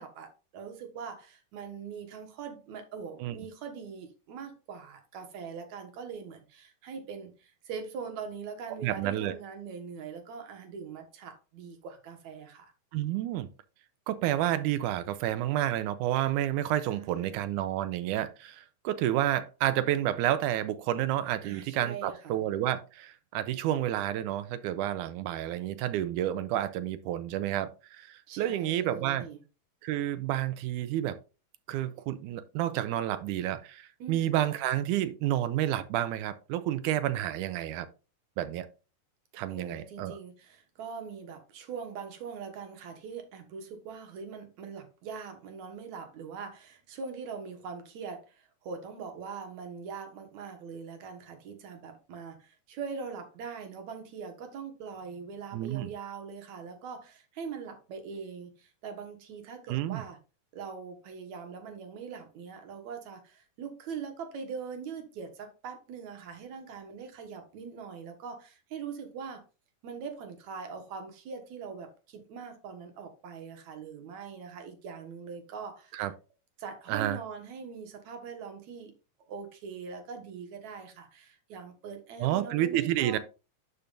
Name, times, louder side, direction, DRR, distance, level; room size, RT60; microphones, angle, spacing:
voice 1, 0.0-12.7 16.8-17.4 21.4-22.4 28.3-29.4 34.0-34.2 39.5-60.2 60.5-69.4 69.8-76.0 76.6-78.9 79.3-83.2, right 6 dB, 65° right, 2.6 m, -42 dB
voice 2, 8.8-9.3 12.9-13.5 14.1-29.2 29.8-31.2 31.7-37.9 38.4-38.7 39.3-40.2 55.5-55.9 59.7-60.0 75.9-76.1 76.9-77.2 82.2-83.2, right 12 dB, 85° right, 2.1 m, -30 dB
11.0 x 5.3 x 2.5 m
omnidirectional pair, 3.6 m